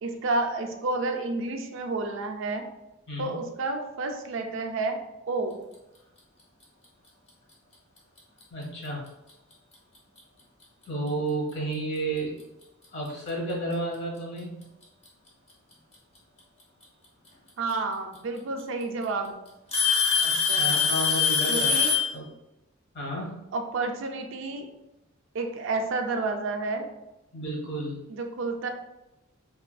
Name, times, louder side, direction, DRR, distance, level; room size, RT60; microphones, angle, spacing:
voice 1, 0.0-2.7 3.2-5.0 5.3-5.6 17.6-19.4 20.5-20.7 21.5-22.0 23.5-24.7 25.3-26.9 28.1-28.7, right 3 dB, 60° right, 4 dB, 0.3 m, -30 dB
voice 2, 3.1-3.4 8.5-9.0 10.9-12.4 12.9-14.6 20.1-21.8 22.1-22.3 22.9-23.3 27.3-28.0, right 2 dB, 55° left, -2 dB, 1.0 m, -32 dB
Alarm / Tick-tock, 8.2-8.4 9.3-9.4 10.2-10.3 12.0-12.1 13.3-13.4 14.6-15.1 16.8-16.9 18.2-18.3 18.6-19.0 19.7-22.1, left 6 dB, 30° left, 0.7 m, -23 dB
2.9 x 2.5 x 2.2 m, 0.93 s
head